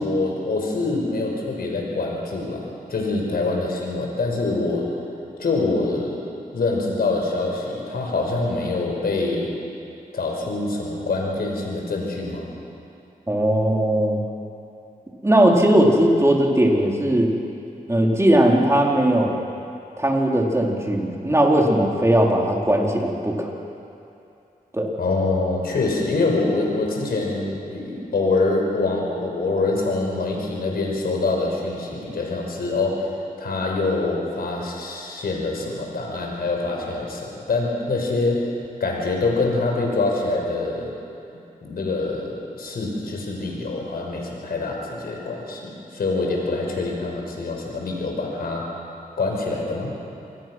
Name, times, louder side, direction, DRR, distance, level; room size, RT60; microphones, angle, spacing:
voice 1, 0.0-4.9 5.4-9.5 10.1-12.5 25.0-38.5 38.8-40.9 41.3-48.7 49.2-49.9, left 3 dB, 75° left, 0 dB, 5.3 m, -25 dB
voice 2, 13.3-14.2 15.2-17.3 17.9-19.4 20.0-23.5 24.7-24.9, right 1 dB, 15° right, -1 dB, 4.3 m, -18 dB
27.0 x 20.0 x 6.3 m, 2.7 s
cardioid pair, 50°, 16 cm